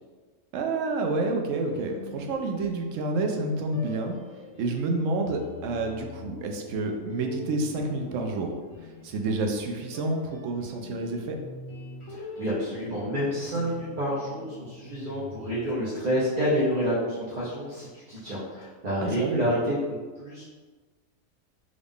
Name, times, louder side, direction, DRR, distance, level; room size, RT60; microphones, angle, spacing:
voice 1, 0.5-4.1 4.6-8.5 9.0-11.4 19.0-19.5, right 2 dB, 70° right, 3 dB, 0.9 m, -29 dB
sound 1, 1.7-3.2 3.7-15.9, left 2 dB, 65° left, 1.3 m, -44 dB
voice 2, 12.1-20.4, equal, 40° right, -8 dB, 0.7 m, -29 dB
3.8 x 2.4 x 3.5 m, 1.4 s
omnidirectional pair, 1.4 m